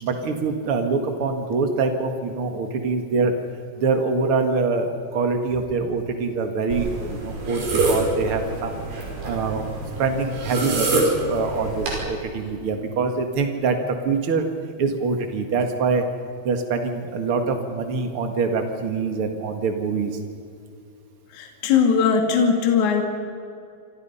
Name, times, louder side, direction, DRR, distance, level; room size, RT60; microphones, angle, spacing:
voice 1, 0.0-3.3 3.8-8.8 9.2-9.6 10.0-13.8 14.0-14.4 14.8-16.0 16.4-20.2, right 4 dB, 80° right, 5 dB, 1.2 m, -24 dB
sound 1, 6.7-12.0, right 2 dB, 60° right, 7.7 m, -26 dB
voice 2, 21.3-23.0, left 6 dB, 45° left, 2 dB, 3.4 m, -19 dB
28.0 x 26.5 x 5.6 m, 2.4 s
omnidirectional pair, 5.4 m